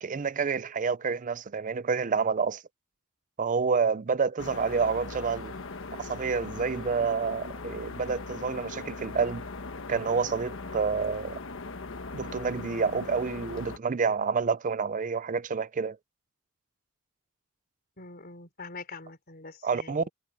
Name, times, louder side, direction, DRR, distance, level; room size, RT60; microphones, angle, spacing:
voice 1, 0.0-2.6 3.4-5.5 6.0-9.4 9.9-11.4 12.1-16.0 19.6-20.1, right 5 dB, 35° right, 0.5 m, -28 dB
sound 1, 4.4-13.8, left 3 dB, 65° left, 1.3 m, -39 dB
voice 2, 18.0-20.1, left 3 dB, 45° left, 3.9 m, -44 dB
head